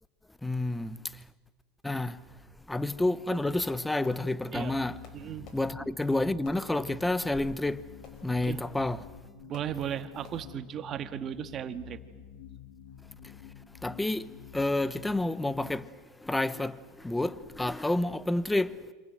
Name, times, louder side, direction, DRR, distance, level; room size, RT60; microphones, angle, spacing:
voice 1, 0.4-1.2 1.8-2.2 2.7-5.0 5.5-7.9 8.2-9.1 13.2-13.3 13.8-18.9, left 2 dB, 5° left, 0.9 m, -30 dB
Fireworks, 3.7-4.7 5.0-7.4 8.0-8.9 9.5-10.0 10.2-10.7, left 5 dB, 45° left, 5.1 m, -56 dB
sound 1, 4.5-15.9, left 9 dB, 75° left, 2.4 m, -50 dB
voice 2, 5.1-5.5 8.5-8.6 9.5-12.0, right 9 dB, 30° right, 1.8 m, -36 dB
28.0 x 26.5 x 7.8 m
supercardioid pair, 140°, 0 cm